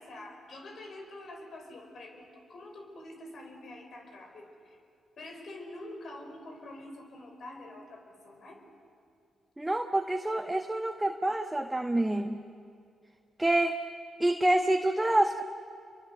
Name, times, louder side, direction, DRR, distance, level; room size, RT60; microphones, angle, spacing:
voice 1, 0.0-4.8 5.2-8.6, left 1 dB, 60° left, 3 dB, 5.1 m, -46 dB
voice 2, 9.6-12.4 13.4-13.8 14.2-15.4, right 1 dB, 15° right, 5 dB, 1.2 m, -27 dB
28.5 x 23.5 x 6.7 m, 2.3 s
hypercardioid pair, 45°, 0 cm